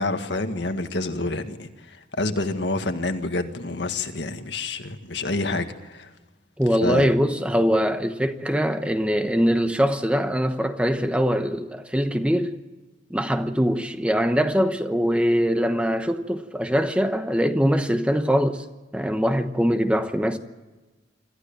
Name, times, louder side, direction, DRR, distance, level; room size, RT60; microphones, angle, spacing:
voice 1, 0.0-6.1 6.8-7.1, left 2 dB, 75° left, 1.8 m, -28 dB
voice 2, 6.6-12.6 13.1-18.7 18.9-20.4, equal, 5° right, 1.0 m, -22 dB
26.0 x 15.0 x 8.9 m
head